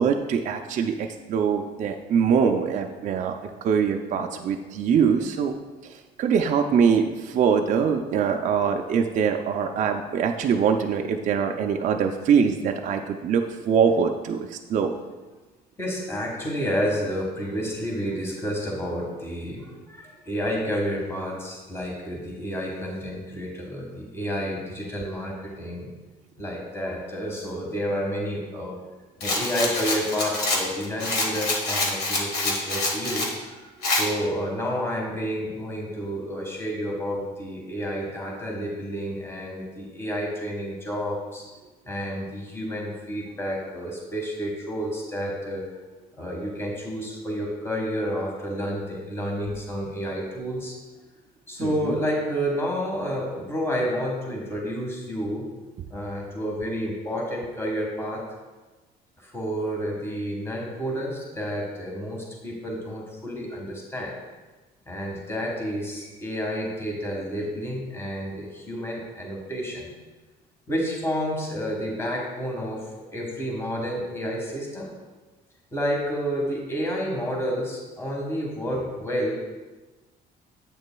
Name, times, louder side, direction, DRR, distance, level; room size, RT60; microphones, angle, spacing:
voice 1, 0.0-5.6 5.8-14.9 51.6-52.0, right 6 dB, 45° right, 3 dB, 0.4 m, -23 dB
voice 2, 15.8-25.9 26.4-28.8 29.2-33.5 33.8-41.4 41.9-45.6 46.2-50.8 51.5-55.5 55.9-58.2 59.2-64.2 64.9-69.9 70.7-74.9 75.7-79.3, equal, 15° left, -2 dB, 1.5 m, -30 dB
Rattle, 29.2-33.3 33.8-34.1, left 2 dB, 70° left, 1.4 m, -26 dB
8.2 x 6.5 x 2.3 m, 1.2 s
cardioid pair, 110°, 17 cm